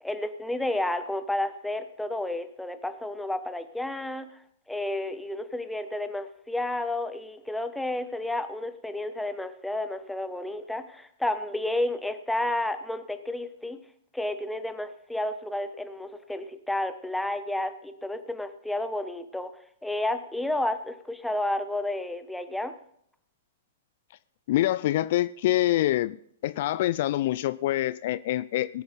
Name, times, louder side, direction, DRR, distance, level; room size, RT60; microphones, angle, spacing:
voice 1, 0.0-4.4 4.7-13.8 14.1-19.5 19.8-22.7, left 1 dB, 5° left, 9 dB, 1.1 m, -31 dB
voice 2, 24.5-26.2 26.4-28.8, left 14 dB, 55° left, 17 dB, 0.4 m, -25 dB
20.0 x 8.3 x 4.1 m, 0.69 s
figure-of-eight pair, 110°, 0 cm